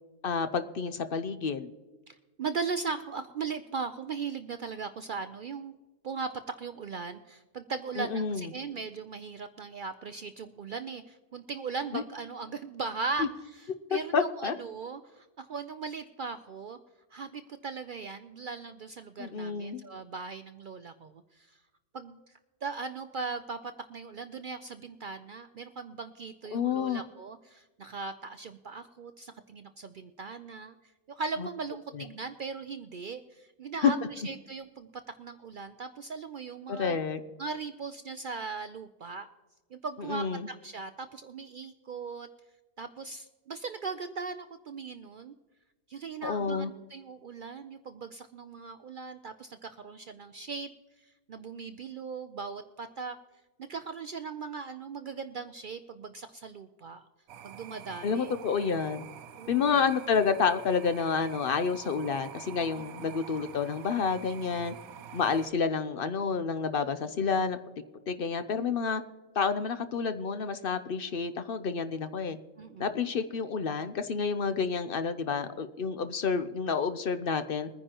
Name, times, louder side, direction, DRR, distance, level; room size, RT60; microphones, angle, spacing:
voice 1, 0.2-1.7 8.0-8.5 11.9-12.0 13.2-13.3 13.9-14.5 19.2-19.8 26.5-27.0 31.4-31.5 31.9-32.1 33.8-33.9 36.7-37.2 40.1-40.5 46.2-46.7 58.0-59.1 59.5-64.7 65.1-67.6 68.1-69.0 69.4-72.4 72.8-77.7, left 5 dB, 55° left, 10 dB, 0.7 m, -29 dB
voice 2, 2.1-5.7 6.0-16.8 17.1-21.6 21.9-22.2 22.6-30.7 31.2-34.9 35.2-37.0 37.4-39.3 39.7-42.3 42.8-45.3 45.9-50.7 51.3-53.2 53.6-57.1 57.4-58.3 59.4-59.8 62.8-63.1 66.9-67.0 72.6-72.9, right 4 dB, 70° right, 9 dB, 0.4 m, -39 dB
sound 1, 57.3-65.5, right 9 dB, 85° right, 1.1 m, -47 dB
22.5 x 9.9 x 2.9 m, 1.2 s
omnidirectional pair, 1.5 m